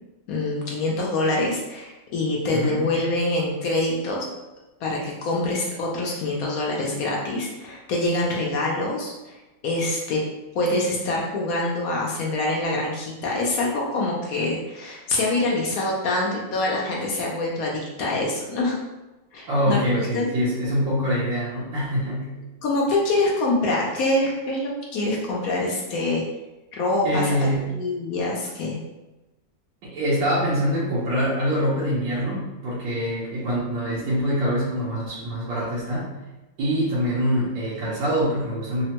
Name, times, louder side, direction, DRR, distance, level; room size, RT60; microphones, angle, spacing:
voice 1, 0.3-4.3 4.8-9.4 9.6-10.2 10.5-18.8 19.3-19.9 20.1-20.3 22.6-26.2 26.7-27.3 27.7-28.8, left 2 dB, 70° left, -2 dB, 0.8 m, -25 dB
voice 2, 2.5-2.9 19.5-22.3 27.0-27.7 29.8-36.1 36.6-38.8, equal, 85° right, -8 dB, 1.4 m, -24 dB
3.4 x 2.1 x 2.8 m, 1.1 s
omnidirectional pair, 1.9 m